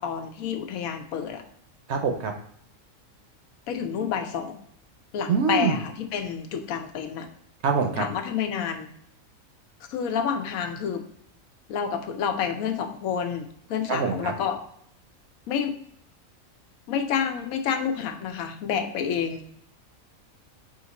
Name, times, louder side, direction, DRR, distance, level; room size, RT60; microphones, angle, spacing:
voice 1, 0.0-1.4 3.7-4.6 5.1-7.3 8.0-8.9 9.9-11.0 11.7-14.6 15.5-15.7 16.9-19.4, left 7 dB, 90° left, 6 dB, 1.1 m, -29 dB
voice 2, 1.9-2.3 5.3-5.7 7.6-8.1 13.9-14.3, right 5 dB, 65° right, 4 dB, 0.8 m, -24 dB
5.0 x 2.6 x 3.9 m, 0.66 s
omnidirectional pair, 1.4 m